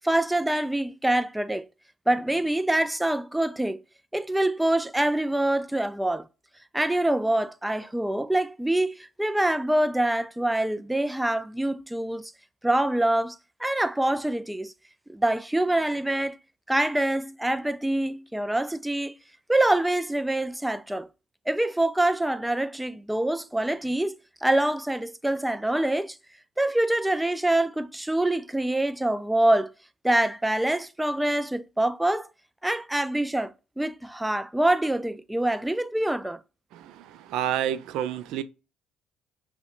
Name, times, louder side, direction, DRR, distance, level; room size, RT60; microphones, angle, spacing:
voice 1, 0.0-1.7 2.1-3.8 4.1-6.3 6.7-12.3 12.6-14.7 15.1-16.4 16.7-19.1 19.5-21.1 21.5-24.1 24.4-26.2 26.6-29.7 30.0-32.3 32.6-33.5 33.8-36.4, right 1 dB, 5° right, 0.3 m, -25 dB
voice 2, 36.7-38.4, right 10 dB, 80° right, 0.4 m, -29 dB
5.6 x 2.1 x 2.5 m
supercardioid pair, 85°, 0 cm